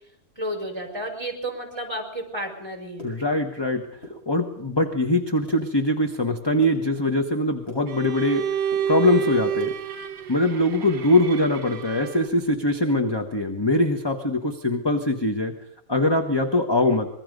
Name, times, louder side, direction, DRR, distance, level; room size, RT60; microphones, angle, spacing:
voice 1, 0.4-3.0, right 1 dB, 15° right, 3 dB, 5.1 m, -32 dB
sound 1, 2.9-3.7 3.9-4.7 5.2-5.7 6.0-8.3 8.6-9.8 10.2-11.7 12.0-12.1 12.4-12.7 13.0-13.3, equal, 45° left, 7.6 m, -43 dB
voice 2, 3.0-3.9 4.3-8.5 8.9-9.7 10.3-15.5 15.9-17.1, left 1 dB, 15° left, 5 dB, 1.3 m, -22 dB
Bowed string instrument, 7.9-12.4, right 9 dB, 70° right, 1.6 m, -29 dB
25.0 x 21.5 x 5.3 m, 0.72 s
omnidirectional pair, 1.6 m